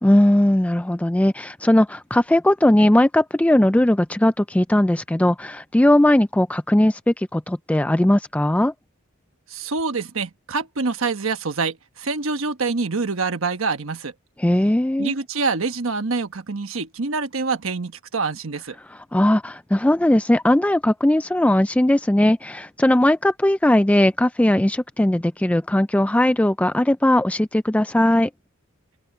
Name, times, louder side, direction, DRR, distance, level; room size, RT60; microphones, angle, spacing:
voice 1, 0.0-8.7 14.4-15.1 18.9-28.3, left 1 dB, 5° left, 0.3 m, -18 dB
voice 2, 9.5-14.1 15.0-18.8, right 4 dB, 70° right, 1.2 m, -26 dB
open air
head